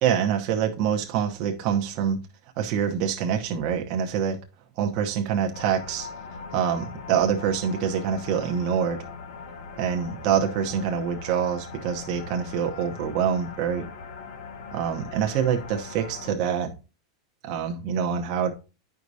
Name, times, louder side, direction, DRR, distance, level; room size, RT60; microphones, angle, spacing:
voice 1, 0.0-2.2 2.6-4.4 4.8-9.1 9.8-13.9 14.7-16.7 17.4-18.5, right 8 dB, 35° right, 3 dB, 0.9 m, -26 dB
sound 1, 5.5-16.3, left 5 dB, 60° left, 1.2 m, -40 dB
10.5 x 4.8 x 2.7 m, 0.30 s
supercardioid pair, 175°, 3 cm